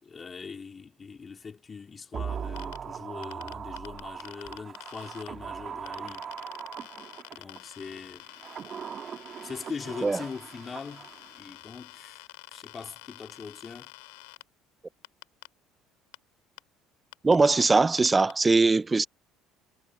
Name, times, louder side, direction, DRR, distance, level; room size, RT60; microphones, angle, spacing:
voice 1, 0.0-6.3 7.3-8.3 9.4-13.9, left 5 dB, 35° left, 4.2 m, -41 dB
sound 1, 2.1-7.6 8.2-11.5 11.7-11.8, right 7 dB, 45° right, 3.1 m, -40 dB
sound 2, 2.6-2.8 3.2-5.3 5.9-14.4 15.0-15.5 16.1-16.2 16.6-16.7 17.1-17.7 18.0-18.3, left 28 dB, 85° left, 4.8 m, -47 dB
voice 2, 17.2-19.1, right 3 dB, 20° right, 0.7 m, -21 dB
supercardioid pair, 80°, 0 cm